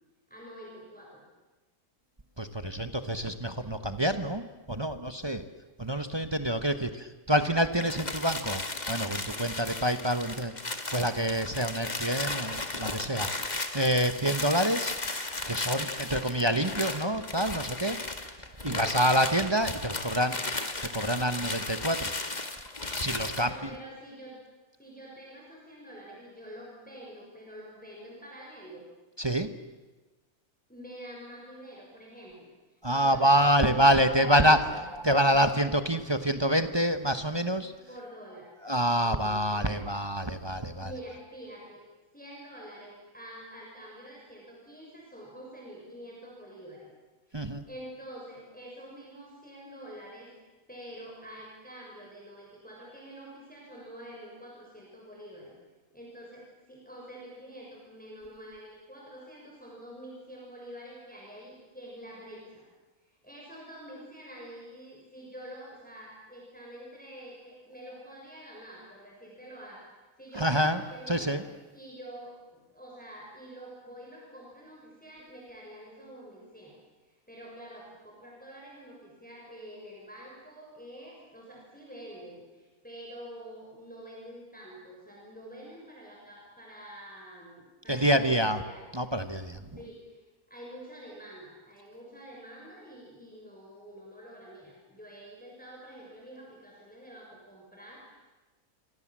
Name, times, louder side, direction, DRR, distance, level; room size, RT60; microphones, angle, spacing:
voice 1, 0.3-1.2 18.7-19.0 23.3-24.4 24.8-28.9 30.7-32.5 32.9-34.8 37.9-38.5 39.0-39.8 40.8-41.8 42.1-46.9 47.3-50.3 50.7-55.5 55.9-62.7 63.0-69.9 70.2-76.8 77.0-88.9 89.8-98.2, equal, 5° left, -4 dB, 6.5 m, -47 dB
voice 2, 2.4-5.4 5.8-14.9 15.5-18.0 18.6-20.4 20.8-22.1 22.9-23.7 29.2-29.5 32.8-37.7 38.6-40.9 47.3-47.6 70.3-70.8 71.1-71.4 87.9-88.6 88.9-89.6, equal, 20° right, 9 dB, 1.1 m, -27 dB
sound 1, 7.7-23.5, left 2 dB, 30° left, 2.0 m, -35 dB
27.5 x 25.0 x 7.5 m, 1.2 s
omnidirectional pair, 1.6 m